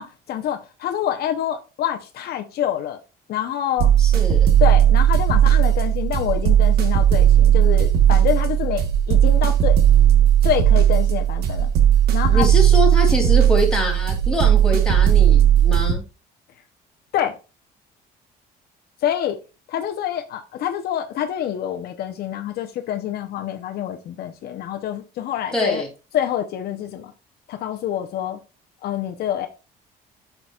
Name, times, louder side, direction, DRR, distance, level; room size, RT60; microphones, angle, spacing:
voice 1, 0.0-3.0 3.3-3.9 4.6-8.8 9.1-9.7 10.4-11.7 12.1-12.5 17.1-17.3 19.0-19.4 19.7-25.8 26.1-27.1 27.5-28.4 28.8-29.5, left 10 dB, 70° left, 0.8 m, -26 dB
sound 1, 3.8-15.9, right 10 dB, 70° right, 1.2 m, -16 dB
voice 2, 4.0-4.5 12.3-16.0 25.5-25.9, left 1 dB, 5° left, 2.9 m, -24 dB
7.8 x 5.9 x 2.4 m
cardioid pair, 110°, 17 cm